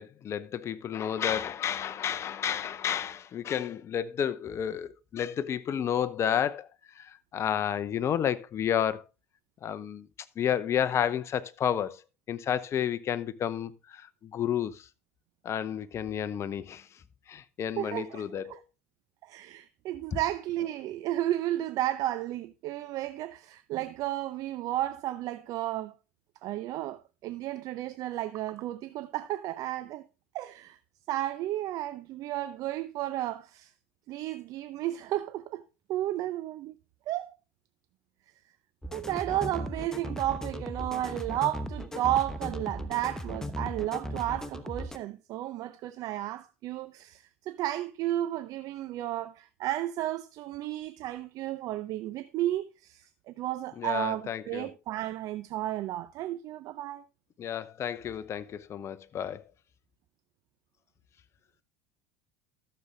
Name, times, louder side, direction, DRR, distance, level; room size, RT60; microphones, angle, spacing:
voice 1, 0.0-6.7 7.0-9.0 9.6-10.1 10.4-12.0 12.3-14.8 15.4-16.9 17.3-18.6 53.8-54.7 57.4-59.4, left 9 dB, 40° left, 0.8 m, -31 dB
voice 2, 17.8-18.6 19.2-25.9 26.4-30.0 30.3-30.8 31.1-33.7 34.1-35.6 35.9-36.7 37.1-37.4 38.9-57.0, right 14 dB, 55° right, 0.6 m, -33 dB
sound 1, 38.8-45.0, equal, 5° left, 1.0 m, -37 dB
13.0 x 7.0 x 3.3 m
hypercardioid pair, 75°, 7 cm